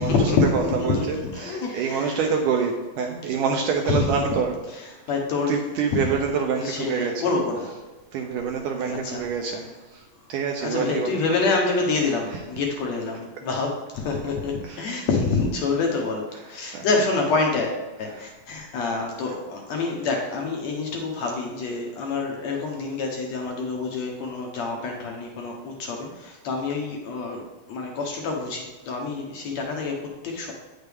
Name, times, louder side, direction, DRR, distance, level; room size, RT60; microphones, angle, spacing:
voice 1, 0.0-2.4 3.8-4.1 4.7-5.6 5.9-6.1 6.5-7.8 8.9-9.5 10.6-30.5, left 4 dB, 70° left, 1 dB, 1.7 m, -27 dB
voice 2, 0.5-4.5 5.5-7.2 8.1-9.6 9.9-10.0 10.3-11.1 14.6-14.8 16.7-16.9, right 6 dB, 75° right, 2 dB, 1.9 m, -26 dB
9.2 x 6.5 x 3.5 m, 1.2 s
omnidirectional pair, 4.2 m